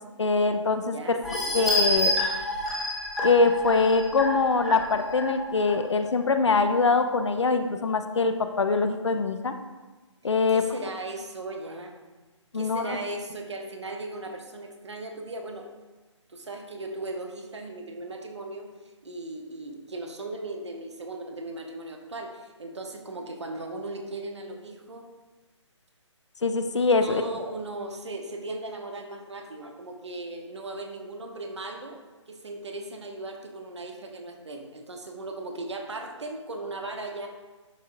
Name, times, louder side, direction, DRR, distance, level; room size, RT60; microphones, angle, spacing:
voice 1, 0.2-1.2 1.5-2.1 3.2-9.5 10.2-10.6 12.5-12.8 26.4-27.2, left 4 dB, 65° left, 7 dB, 0.6 m, -23 dB
voice 2, 0.8-1.6 10.5-12.0 12.5-15.7 16.3-18.7 19.0-25.1 27.0-32.0 32.3-37.3, right 2 dB, 65° right, 4 dB, 0.9 m, -37 dB
sound 1, 1.2-5.7 6.2-6.3 6.7-6.8, left 1 dB, ahead, 0.6 m, -28 dB
11.0 x 3.6 x 2.6 m, 1.2 s
figure-of-eight pair, 145°, 16 cm